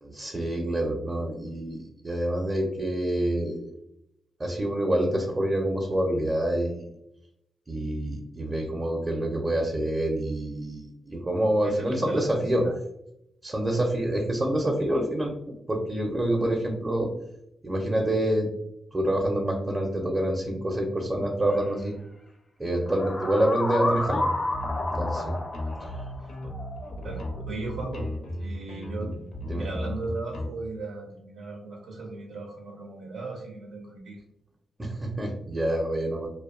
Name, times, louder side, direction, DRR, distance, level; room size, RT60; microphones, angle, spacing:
voice 1, 0.0-3.6 4.4-6.9 7.7-12.6 13.4-15.3 15.7-17.1 17.6-18.5 18.9-22.0 22.6-24.3 24.9-25.3 25.8-26.0 29.0-29.1 29.5-29.7 34.8-36.3, right 1 dB, 25° right, 0 dB, 0.5 m, -27 dB
voice 2, 11.6-12.7 25.8-25.9 26.2-26.5 27.0-28.1 28.4-29.2 29.5-34.2, right 3 dB, 80° right, 0 dB, 0.5 m, -37 dB
sound 1, 21.5-21.6 22.9-27.4, left 2 dB, 35° left, 0.4 m, -31 dB
sound 2, 24.0-30.5, left 1 dB, 75° left, 0.6 m, -35 dB
2.5 x 2.1 x 2.3 m, 0.80 s
cardioid pair, 70°, 0 cm